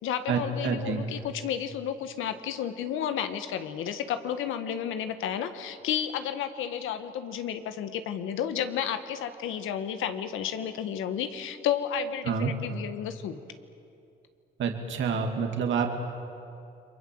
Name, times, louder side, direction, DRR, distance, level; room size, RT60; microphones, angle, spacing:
voice 1, 0.0-13.4, left 9 dB, 90° left, 9 dB, 1.6 m, -32 dB
voice 2, 0.6-1.0 12.3-12.5 14.6-15.9, right 6 dB, 70° right, 3 dB, 2.6 m, -27 dB
29.5 x 23.0 x 7.8 m, 2.6 s
cardioid pair, 90°, 20 cm